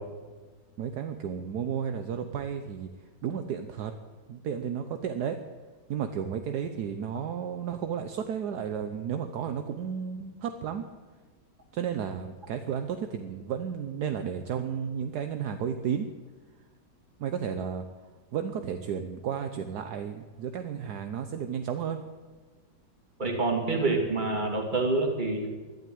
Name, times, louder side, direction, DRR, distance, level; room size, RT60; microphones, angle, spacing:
voice 1, 0.8-2.9 3.2-3.9 4.3-5.4 5.9-10.8 11.7-16.1 17.2-17.8 18.3-22.0, right 8 dB, 70° right, 8 dB, 1.3 m, -33 dB
voice 2, 23.2-25.5, right 3 dB, 25° right, 1 dB, 2.7 m, -27 dB
12.0 x 12.0 x 9.3 m, 1.4 s
omnidirectional pair, 1.9 m